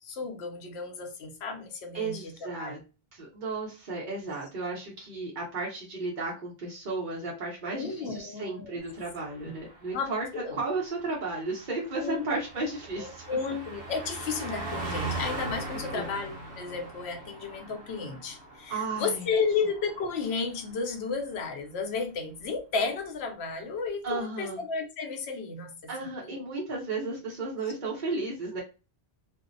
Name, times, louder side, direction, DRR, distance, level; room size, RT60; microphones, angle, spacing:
voice 1, 0.0-2.8 7.7-8.8 9.2-9.3 9.9-10.6 12.0-12.2 13.0-25.8 26.2-26.4, left 5 dB, 75° left, 0.9 m, -33 dB
voice 2, 1.9-2.8 3.1-13.2 15.7-16.1 18.7-19.3 24.0-24.6 25.9-28.6, right 3 dB, 50° right, 0.8 m, -34 dB
Car passing by, 8.9-20.8 21.1-21.4, right 2 dB, 75° right, 1.0 m, -40 dB
2.5 x 2.0 x 2.5 m
omnidirectional pair, 1.1 m